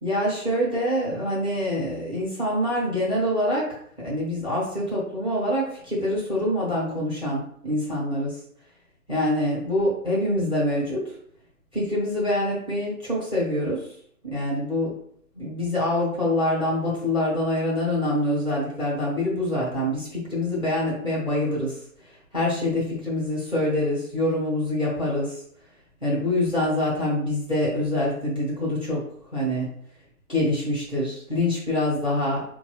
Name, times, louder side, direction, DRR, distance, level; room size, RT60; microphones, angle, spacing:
voice 1, 0.0-3.7 4.0-8.4 9.1-11.0 11.7-13.9 14.2-14.9 15.3-21.7 22.3-25.4 26.0-29.0 29.3-29.7 30.3-32.4, left 1 dB, 5° left, -7 dB, 0.8 m, -25 dB
4.3 x 2.3 x 3.2 m, 0.63 s
figure-of-eight pair, 145°, 45 cm